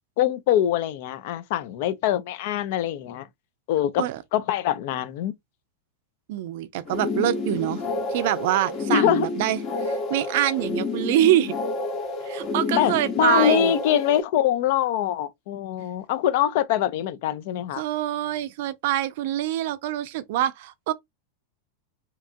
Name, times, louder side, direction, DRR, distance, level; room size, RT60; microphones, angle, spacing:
voice 1, 0.2-3.3 3.7-5.3 8.9-9.3 12.8-17.8, left 10 dB, 55° left, 0.4 m, -24 dB
voice 2, 6.3-7.8 8.1-11.5 12.2-13.7 17.7-20.9, right 13 dB, 60° right, 0.4 m, -25 dB
sound 1, 6.8-14.2, left 3 dB, 35° left, 0.8 m, -29 dB
2.9 x 2.3 x 2.5 m
supercardioid pair, 145°, 0 cm